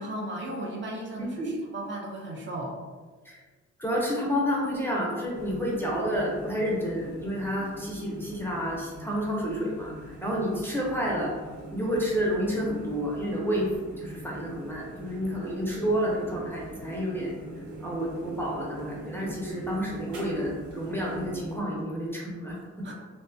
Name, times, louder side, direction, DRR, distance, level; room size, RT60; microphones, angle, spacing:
voice 1, 0.0-2.7 22.8-22.9, right 1 dB, 40° right, -1 dB, 0.5 m, -35 dB
voice 2, 1.2-1.5 3.3-3.4 3.8-11.3 11.7-13.7 14.0-17.3 17.8-22.9, equal, 10° left, -4 dB, 0.5 m, -30 dB
sound 1, 5.3-21.6, right 1 dB, 70° right, 0.8 m, -43 dB
2.6 x 2.1 x 2.5 m, 1.4 s
cardioid pair, 90°, 30 cm